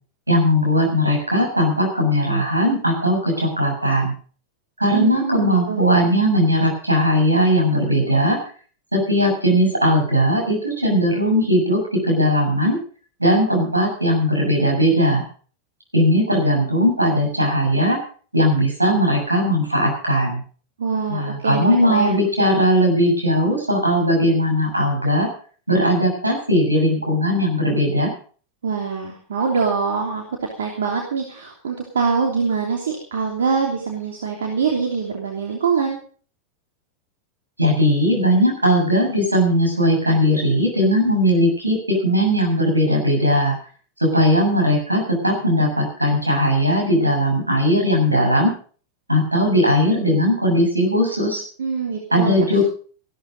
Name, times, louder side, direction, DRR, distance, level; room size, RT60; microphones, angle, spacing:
voice 1, 0.3-4.1 4.8-8.4 8.9-12.8 13.2-15.2 15.9-18.0 18.3-20.4 21.1-25.3 25.7-28.1 37.6-43.6 44.0-48.5 49.1-51.4 52.1-52.6, equal, 85° right, 0 dB, 7.2 m, -18 dB
voice 2, 4.9-5.8 20.8-22.2 28.6-36.0 51.6-52.6, right 5 dB, 65° right, 1 dB, 3.0 m, -24 dB
15.5 x 13.0 x 5.3 m, 0.43 s
figure-of-eight pair, 90°, 0 cm